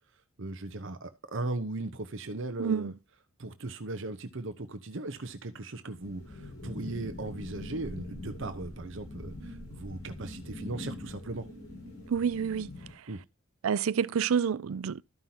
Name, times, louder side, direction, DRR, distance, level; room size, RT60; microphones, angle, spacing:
voice 1, 0.4-2.9 3.4-11.5 13.1-13.2, right 2 dB, 60° right, 0.9 m, -38 dB
voice 2, 2.6-2.9 12.1-12.7 13.6-15.0, right 7 dB, 80° right, 0.4 m, -28 dB
sound 1, 6.0-12.9, left 1 dB, 85° left, 5.5 m, -43 dB
13.5 x 5.5 x 2.9 m
head